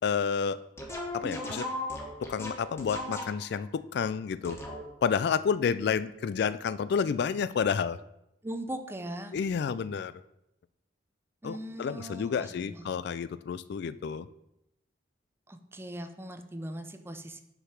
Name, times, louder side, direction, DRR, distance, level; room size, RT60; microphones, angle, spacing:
voice 1, 0.0-0.6 1.1-1.7 2.2-4.6 5.0-8.0 9.3-10.1 11.4-14.3, left 6 dB, 60° left, 15 dB, 0.3 m, -30 dB
sound 1, 0.8-3.6 4.4-5.1, left 1 dB, 15° left, 1.2 m, -37 dB
voice 2, 8.4-9.4 11.4-12.9 15.5-17.4, right 1 dB, 15° right, 8 dB, 0.5 m, -40 dB
6.5 x 4.9 x 5.7 m, 0.83 s
head